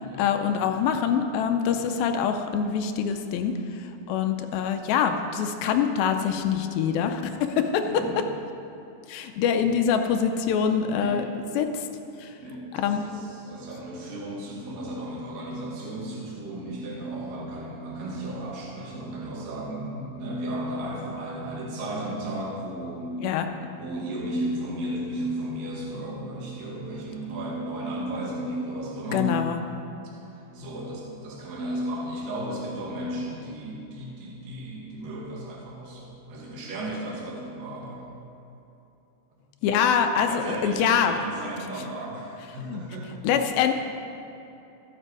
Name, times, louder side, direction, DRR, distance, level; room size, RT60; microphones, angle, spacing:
voice 1, 0.2-8.0 9.1-11.3 11.6-11.9 12.2-12.3 12.7-13.0 23.2-23.5 29.1-29.6 39.6-41.2 42.7-42.8 43.2-43.7, left 7 dB, 80° left, 6 dB, 2.4 m, -24 dB
voice 2, 1.7-2.0 7.8-8.2 10.9-11.2 12.4-23.2 23.8-29.6 30.2-38.1 40.2-43.1, right 1 dB, 65° right, -5 dB, 3.6 m, -34 dB
14.0 x 10.0 x 4.7 m, 2.9 s
omnidirectional pair, 4.4 m